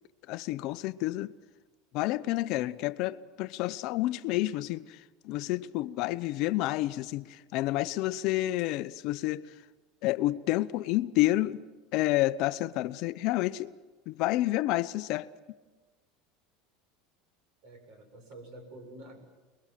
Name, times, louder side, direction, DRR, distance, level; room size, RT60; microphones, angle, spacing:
voice 1, 0.3-1.3 1.9-9.5 10.0-11.6 11.9-13.7 14.1-15.3, left 17 dB, 55° left, 0.7 m, -29 dB
voice 2, 17.6-19.2, right 1 dB, 55° right, 7.3 m, -48 dB
27.5 x 21.5 x 7.5 m
supercardioid pair, 145°, 0 cm